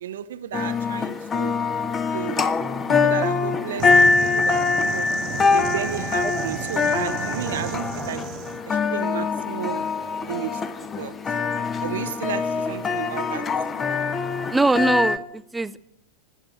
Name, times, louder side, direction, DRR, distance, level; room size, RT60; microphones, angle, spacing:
voice 1, 0.0-1.6 2.1-5.1 5.5-8.3 8.7-9.9 10.2-11.2 11.8-13.5, right 10 dB, 60° right, 0.6 m, -33 dB
sound 1, 0.5-15.2, left 4 dB, 20° left, 0.9 m, -24 dB
sound 2, 3.8-8.6, right 7 dB, 40° right, 1.0 m, -34 dB
voice 2, 14.5-15.8, right 2 dB, 10° right, 0.6 m, -21 dB
13.0 x 8.8 x 9.8 m
figure-of-eight pair, 90°, 0 cm